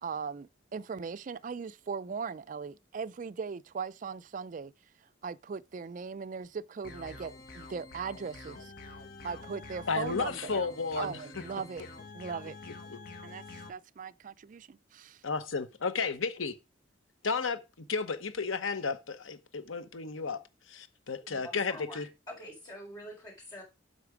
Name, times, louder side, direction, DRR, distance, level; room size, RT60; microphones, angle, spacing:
voice 1, 0.0-4.7 5.2-8.7 9.2-10.6 11.0-11.8 12.1-12.6 13.2-15.2, right 5 dB, 40° right, 0.3 m, -39 dB
sound 1, 6.8-13.7, left 3 dB, 50° left, 1.5 m, -47 dB
voice 2, 9.9-11.2 12.9-13.0 15.2-16.5 17.2-17.6 17.9-20.4 20.7-22.1, left 4 dB, 85° left, 1.0 m, -33 dB
voice 3, 21.2-23.6, equal, 20° left, 4.0 m, -46 dB
8.3 x 5.7 x 4.9 m
head